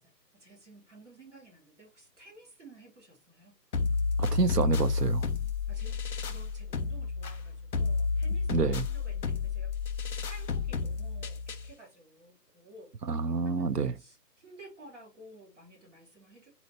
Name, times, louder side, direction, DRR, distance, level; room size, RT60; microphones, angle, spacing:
voice 1, 0.0-3.6 5.7-6.0 6.2-16.5, right 2 dB, 45° right, 2.7 m, -54 dB
sound 1, 3.7-11.7, left 4 dB, 65° left, 0.8 m, -31 dB
voice 2, 4.2-5.2 8.5-8.9 13.1-13.9, right 5 dB, 70° right, 0.7 m, -28 dB
4.1 x 3.0 x 4.0 m
figure-of-eight pair, 180°, 50 cm